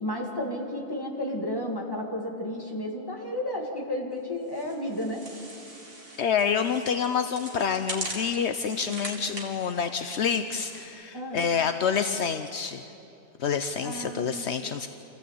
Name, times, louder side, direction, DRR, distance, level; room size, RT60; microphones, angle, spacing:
voice 1, 0.0-5.2 11.1-11.5 13.8-14.5, left 1 dB, 20° left, -1 dB, 2.7 m, -32 dB
Bush Rubbing Movement, 4.5-10.9, right 1 dB, 55° right, 2.7 m, -41 dB
voice 2, 6.2-12.8 13.4-14.9, left 7 dB, 70° left, 8 dB, 1.0 m, -27 dB
27.0 x 15.5 x 8.5 m, 2.7 s
omnidirectional pair, 1.2 m